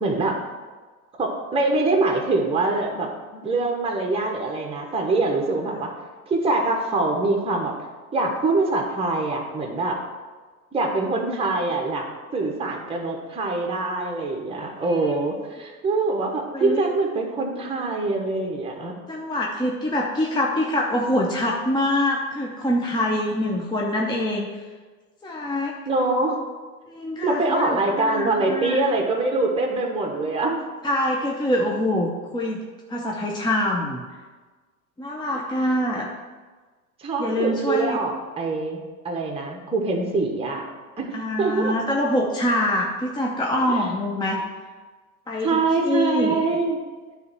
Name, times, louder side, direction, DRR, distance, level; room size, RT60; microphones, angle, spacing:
voice 1, 0.0-0.4 1.2-5.9 6.3-7.7 8.1-10.0 10.7-12.1 12.3-18.9 25.9-26.4 27.2-30.6 37.0-38.8 39.0-40.6 41.0-41.1 41.4-41.8 43.7-43.9 45.4-46.8, right 3 dB, 15° right, 1 dB, 1.2 m, -24 dB
voice 2, 14.8-15.2 16.5-16.8 19.1-24.5 25.2-25.8 26.9-28.8 30.8-32.6 32.9-34.0 35.0-36.1 37.2-38.0 41.1-44.4 45.3-46.4, left 1 dB, 10° left, -1 dB, 0.7 m, -25 dB
9.3 x 3.4 x 6.1 m, 1.4 s
hypercardioid pair, 95°, 44 cm